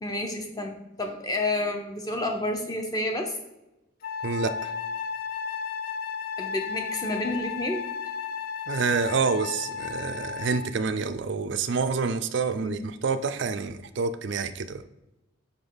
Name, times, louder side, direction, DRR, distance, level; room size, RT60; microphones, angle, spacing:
voice 1, 0.0-3.4 6.4-7.9 12.6-12.8, left 1 dB, 20° left, 3 dB, 0.7 m, -30 dB
Wind instrument woodwind instrument, 4.0-10.8, left 6 dB, 45° left, 0.4 m, -34 dB
voice 2, 4.2-4.7 8.7-14.8, right 5 dB, 55° right, 10 dB, 0.4 m, -28 dB
5.2 x 5.1 x 3.9 m, 0.94 s
head